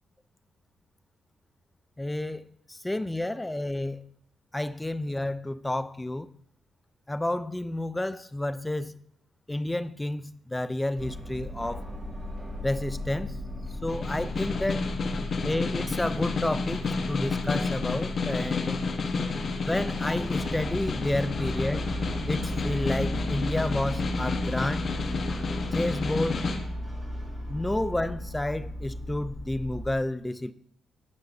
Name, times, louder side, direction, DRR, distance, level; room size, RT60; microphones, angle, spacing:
voice 1, 2.0-4.0 4.5-6.3 7.1-9.0 9.5-11.8 12.6-13.4 13.8-14.8 15.4-18.8 19.6-21.8 22.3-24.9 25.7-26.4 27.5-30.5, left 1 dB, 10° left, 0.4 m, -30 dB
sound 1, 11.0-29.9, left 1 dB, 15° right, 2.2 m, -35 dB
Snare drum, 13.9-26.6, left 4 dB, 45° left, 1.1 m, -31 dB
15.0 x 5.8 x 2.7 m
cardioid pair, 90°, 0 cm